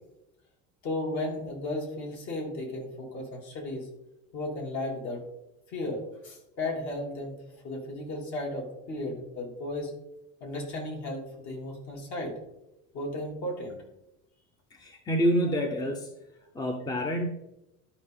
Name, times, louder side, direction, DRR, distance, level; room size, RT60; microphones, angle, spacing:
voice 1, 0.8-3.9 4.3-5.2 5.7-7.4 7.6-9.9 10.4-12.4 12.9-13.8, left 1 dB, 55° left, -1 dB, 3.2 m, -34 dB
voice 2, 14.7-16.1 16.5-17.3, equal, 10° left, 4 dB, 0.7 m, -27 dB
12.0 x 5.3 x 3.7 m, 0.89 s
cardioid pair, 145°, 34 cm